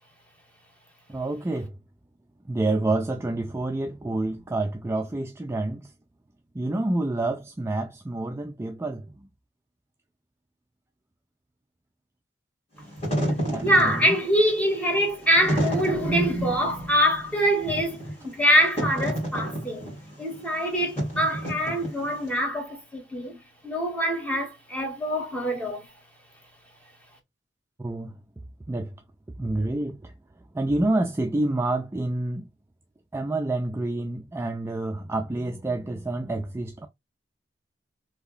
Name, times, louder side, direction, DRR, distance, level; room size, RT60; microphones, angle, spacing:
voice 1, 1.1-1.7 2.5-5.9 6.6-9.1 13.5-14.1 27.8-28.2 28.7-28.9 29.4-30.1 30.5-32.5 33.1-36.9, right 2 dB, 15° right, 0.3 m, -28 dB
Wind / Fire, 12.8-22.3, right 1 dB, 35° left, 2.1 m, -31 dB
voice 2, 13.6-23.4 23.6-25.9, equal, 10° left, 1.3 m, -24 dB
3.4 x 2.8 x 2.4 m
head